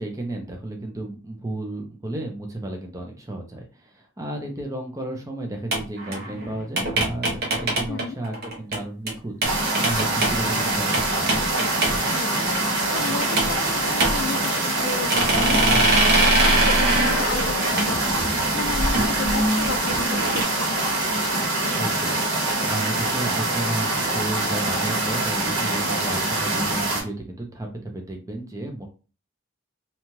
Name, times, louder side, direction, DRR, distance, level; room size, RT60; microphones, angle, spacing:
voice 1, 0.0-11.6 21.7-22.2 22.6-28.9, right 1 dB, 15° right, 2 dB, 0.5 m, -33 dB
sound 1, 5.7-8.8 9.1-9.2 9.4-12.1 12.4-13.7 14.0-14.8 15.1-20.4, right 2 dB, 50° right, 0.8 m, -23 dB
voice 2, 7.9-8.2 12.1-21.0, left 5 dB, 55° left, 9 dB, 0.3 m, -34 dB
sound 2, 9.4-27.0, right 2 dB, 75° right, 1.5 m, -24 dB
2.8 x 2.3 x 3.0 m, 0.34 s
head